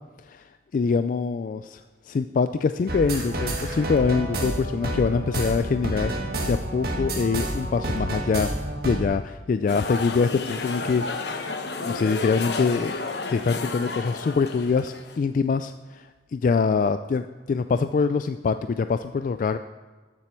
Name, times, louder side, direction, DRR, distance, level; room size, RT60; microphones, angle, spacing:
voice 1, 0.7-1.8 2.1-6.1 6.5-8.5 8.8-13.0 13.3-16.0 16.3-19.6, left 5 dB, 50° left, 10 dB, 0.3 m, -24 dB
sound 1, 2.9-9.0, right 1 dB, 60° right, 1.7 m, -29 dB
sound 2, 9.7-15.2, left 3 dB, 70° left, 1.0 m, -32 dB
13.0 x 7.7 x 4.4 m, 1.4 s
head